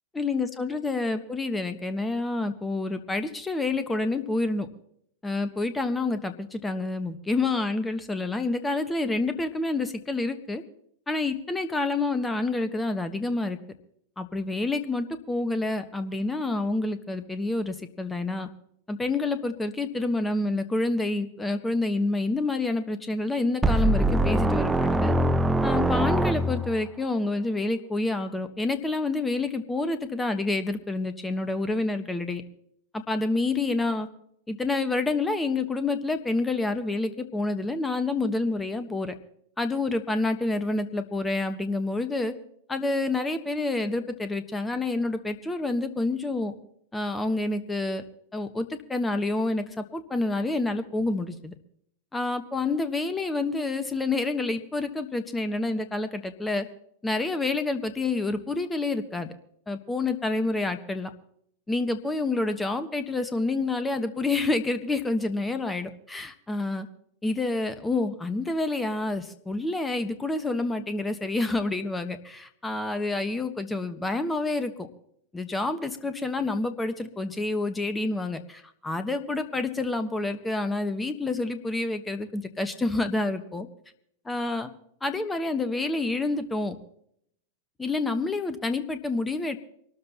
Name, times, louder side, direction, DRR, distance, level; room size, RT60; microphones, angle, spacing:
voice 1, 0.1-4.7 5.2-10.6 11.1-13.6 14.2-18.5 18.9-25.1 25.6-32.4 32.9-34.1 34.5-39.1 39.6-42.3 42.7-46.5 46.9-48.0 48.3-51.5 52.1-56.7 57.0-59.3 59.7-61.1 61.7-66.9 67.2-74.9 75.3-83.7 84.3-84.7 85.0-86.8 87.8-89.6, left 2 dB, 10° left, 10 dB, 1.2 m, -28 dB
sound 1, 23.6-26.9, right 1 dB, 10° right, 0.8 m, -23 dB
24.5 x 13.0 x 2.9 m, 0.69 s
figure-of-eight pair, 90°, 0 cm